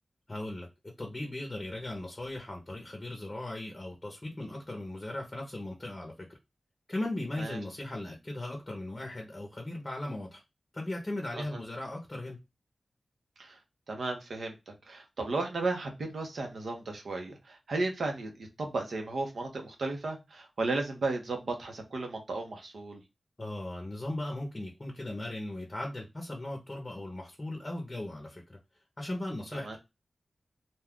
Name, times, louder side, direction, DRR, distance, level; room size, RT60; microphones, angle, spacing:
voice 1, 0.3-6.3 6.9-10.4 10.7-12.4 23.4-28.6 29.0-29.8, left 1 dB, 25° left, 0.7 m, -38 dB
voice 2, 13.9-23.0 29.6-29.8, right 3 dB, 80° right, 0.9 m, -34 dB
2.6 x 2.3 x 3.5 m
wide cardioid pair, 115°, 0 cm